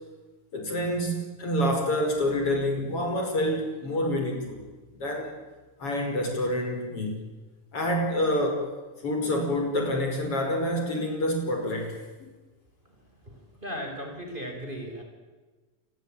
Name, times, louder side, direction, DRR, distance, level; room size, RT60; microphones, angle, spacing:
voice 1, 0.5-4.6 5.0-5.4 5.8-7.2 7.7-8.7 9.0-12.0, left 1 dB, 50° left, 3 dB, 6.3 m, -27 dB
voice 2, 13.2-15.0, equal, 15° right, 3 dB, 5.3 m, -37 dB
28.0 x 22.5 x 9.0 m, 1.3 s
omnidirectional pair, 3.3 m